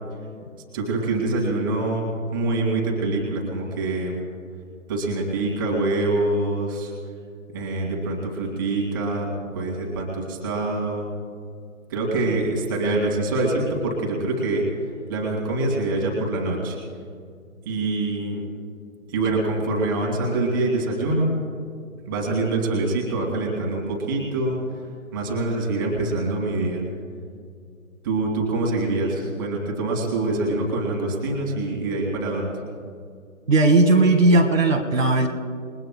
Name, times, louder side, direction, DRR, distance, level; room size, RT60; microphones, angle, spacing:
voice 1, 0.7-2.1 2.3-4.2 4.9-6.9 7.5-9.3 9.5-11.1 11.9-14.6 15.1-16.8 17.6-18.4 19.1-21.3 22.1-24.6 25.1-26.8 28.0-32.5, right 2 dB, 15° right, -2 dB, 2.3 m, -25 dB
voice 2, 33.5-35.3, right 2 dB, 60° right, 3 dB, 2.0 m, -17 dB
29.0 x 21.5 x 2.3 m, 2.2 s
hypercardioid pair, 170°, 43 cm